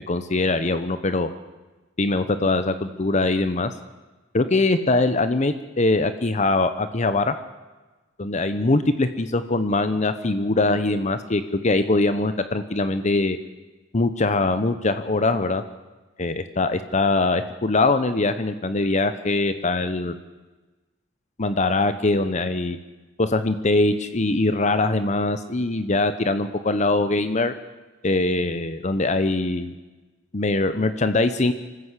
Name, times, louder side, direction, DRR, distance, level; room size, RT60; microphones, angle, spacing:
voice 1, 0.1-1.3 2.0-3.7 4.3-7.4 8.2-13.4 13.9-15.6 16.2-20.2 21.4-22.8 23.2-27.5 28.0-29.7 30.3-31.5, left 2 dB, 40° left, 10 dB, 0.9 m, -22 dB
25.5 x 14.5 x 8.2 m, 1.2 s
head